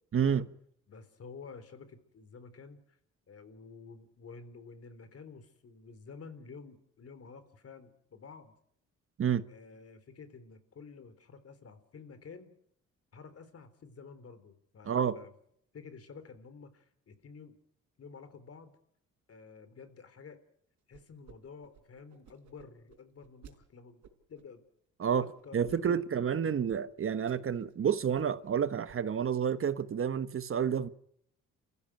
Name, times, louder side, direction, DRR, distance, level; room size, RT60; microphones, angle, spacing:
voice 1, 0.1-0.5 9.2-9.4 14.9-15.2 25.0-25.2 25.5-30.9, right 8 dB, 45° right, 1.2 m, -29 dB
voice 2, 0.9-3.0 3.3-8.6 9.5-12.5 13.1-15.3 15.7-17.6 18.0-18.8 19.3-20.4 20.9-24.0 24.3-24.6 25.1-26.0, left 5 dB, 50° left, 3.8 m, -50 dB
sound 1, 20.9-21.4 21.6-23.5 24.0-24.4 25.1-25.8 26.1-26.2 26.7-26.8 27.1-27.7 28.0-28.5 28.9-29.2, right 8 dB, 70° right, 4.5 m, -56 dB
29.5 x 15.5 x 9.2 m
cardioid pair, 90°, 30 cm